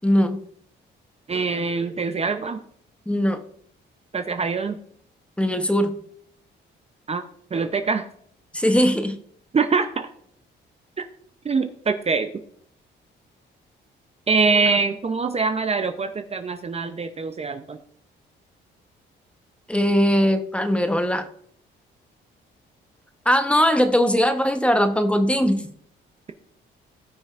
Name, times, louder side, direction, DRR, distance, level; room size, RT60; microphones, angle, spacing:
voice 1, 0.0-0.4 3.1-3.4 5.4-6.0 8.5-9.1 19.7-21.3 23.2-25.7, equal, 5° left, 7 dB, 1.0 m, -20 dB
voice 2, 1.3-2.6 4.1-4.8 7.1-7.2 7.5-8.1 9.5-10.1 11.0-11.1 11.4-12.3 14.3-17.8, right 4 dB, 30° right, 8 dB, 0.7 m, -24 dB
18.0 x 6.1 x 2.5 m, 0.64 s
cardioid pair, 90°, 20 cm